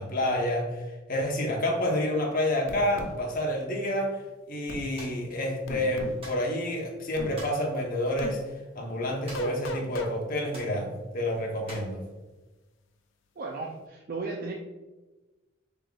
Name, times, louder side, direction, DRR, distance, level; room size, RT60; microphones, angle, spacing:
voice 1, 0.0-4.2 4.5-12.0, left 1 dB, 45° left, 0 dB, 0.9 m, -29 dB
sound 1, 2.7-3.2 4.7-4.9 5.7-6.2 7.2-7.4 8.2-8.4 9.3-10.1, left 2 dB, 65° left, 0.5 m, -36 dB
sound 2, 5.0-5.2 6.2-6.5 7.3-7.6 9.3-9.7 9.9-10.0 10.5-10.8 11.7-12.0, right 1 dB, 30° right, 1.2 m, -44 dB
voice 2, 13.4-14.5, right 3 dB, 45° right, -1 dB, 0.4 m, -35 dB
5.7 x 3.5 x 2.4 m, 1.2 s
head